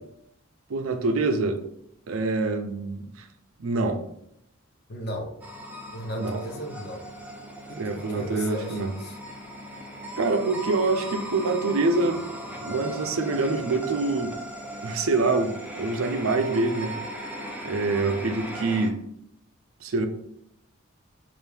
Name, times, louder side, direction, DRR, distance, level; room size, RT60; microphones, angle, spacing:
voice 1, 0.7-1.6 2.1-3.3 3.6-4.0 6.1-6.4 7.8-8.9 10.2-12.2 12.6-14.3 14.8-17.0 17.6-19.0 19.8-20.1, right 3 dB, 85° right, 7 dB, 0.5 m, -25 dB
voice 2, 4.9-5.3 5.9-7.1 7.7-9.2, equal, 50° left, 2 dB, 0.8 m, -36 dB
sound 1, 5.4-18.9, equal, 10° right, 0.5 m, -38 dB
3.4 x 2.6 x 4.5 m, 0.74 s
head